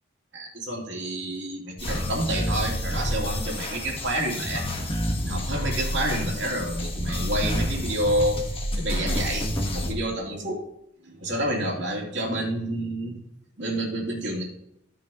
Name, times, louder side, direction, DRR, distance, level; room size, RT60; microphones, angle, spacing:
voice 1, 0.3-4.6 5.2-8.4 8.8-10.6 11.0-13.2 13.6-14.4, right 1 dB, 65° right, -2 dB, 2.8 m, -29 dB
sound 1, 1.8-9.9, equal, 30° left, 1.3 m, -29 dB
15.0 x 6.2 x 3.0 m, 0.80 s
head